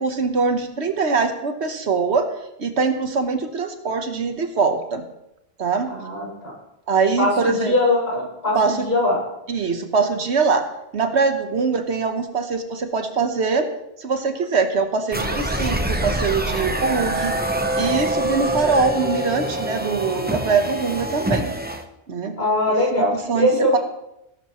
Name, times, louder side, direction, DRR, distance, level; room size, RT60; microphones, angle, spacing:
voice 1, 0.0-2.3 2.6-5.0 5.6-5.9 6.9-7.7 8.5-8.9 9.5-10.6 10.9-13.7 14.0-17.3 17.8-21.5 22.1-22.4 23.3-23.8, right 4 dB, 80° right, 6 dB, 1.4 m, -22 dB
voice 2, 5.9-6.5 7.2-9.2 22.4-23.8, left 1 dB, 65° left, -5 dB, 6.5 m, -21 dB
sound 1, 15.1-21.8, right 1 dB, 10° right, 0.8 m, -25 dB
18.0 x 11.5 x 3.1 m, 0.88 s
omnidirectional pair, 1.1 m